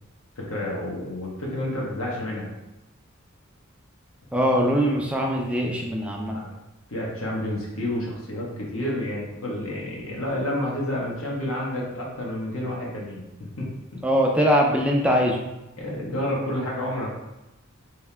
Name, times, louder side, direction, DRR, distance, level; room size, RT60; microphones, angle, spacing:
voice 1, 0.4-2.5 6.3-6.5 6.9-14.0 15.8-17.1, left 1 dB, 75° left, -3 dB, 1.1 m, -30 dB
voice 2, 4.3-6.4 14.0-15.4, equal, 5° right, 0 dB, 0.3 m, -22 dB
3.2 x 2.8 x 3.3 m, 0.97 s
head